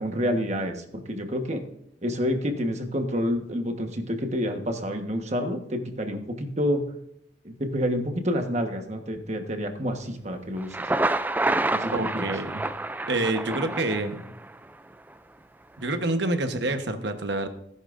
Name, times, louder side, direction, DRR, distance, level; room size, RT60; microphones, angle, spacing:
voice 1, 0.0-1.6 2.0-6.8 7.4-10.9 11.7-12.3, equal, 35° right, 5 dB, 1.3 m, -28 dB
Thunder, 10.6-14.5, right 2 dB, 10° right, 0.3 m, -28 dB
voice 2, 11.9-12.6 13.1-14.3 15.8-17.5, right 2 dB, 65° right, 7 dB, 1.1 m, -27 dB
17.5 x 11.0 x 2.6 m, 0.75 s
head